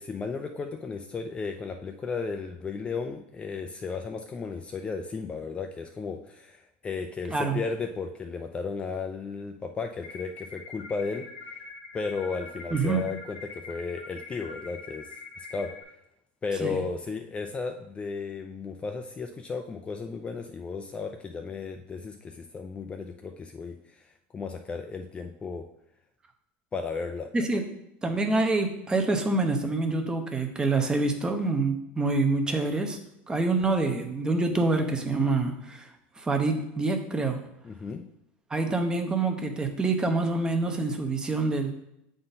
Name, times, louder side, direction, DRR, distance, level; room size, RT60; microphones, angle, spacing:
voice 1, 0.0-11.3 11.9-15.7 16.4-25.6 26.7-27.3 37.6-38.0, left 4 dB, 20° left, 5 dB, 0.4 m, -34 dB
voice 2, 7.3-7.6 12.7-13.0 16.6-16.8 27.3-27.6 28.0-33.0 33.3-35.9 36.2-37.4 38.5-41.7, right 3 dB, 15° right, 5 dB, 0.8 m, -26 dB
sound 1, 10.0-15.8, left 4 dB, 80° left, 1.4 m, -44 dB
7.6 x 3.9 x 4.0 m, 0.82 s
supercardioid pair, 125°, 5 cm